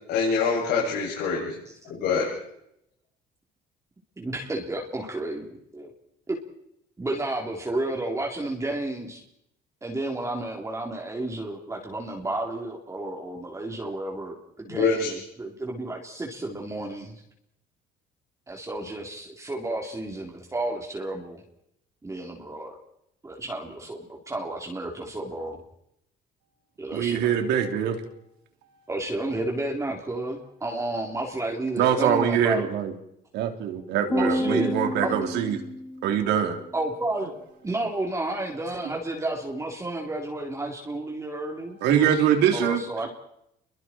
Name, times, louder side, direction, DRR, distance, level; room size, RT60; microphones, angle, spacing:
voice 1, 0.1-1.5 1.9-2.3 14.7-15.1, left 5 dB, 80° left, -5 dB, 7.9 m, -24 dB
voice 2, 4.2-5.5 5.7-5.9 6.3-6.4 7.0-9.2 9.8-17.2 18.5-21.4 22.0-22.8 23.2-24.0 24.3-25.6 26.8-27.3 28.9-32.7 34.2-34.7 35.0-35.2 36.7-41.8 42.5-43.1, right 2 dB, 15° right, 0 dB, 3.8 m, -31 dB
voice 3, 26.9-28.0 31.8-32.9 33.3-35.6 36.0-36.6 38.8-39.0 41.8-42.8, right 8 dB, 85° right, 5 dB, 3.5 m, -23 dB
sound 1, 34.1-36.5, left 1 dB, 10° left, 1.1 m, -30 dB
29.0 x 23.0 x 4.6 m, 0.79 s
cardioid pair, 110°, 17 cm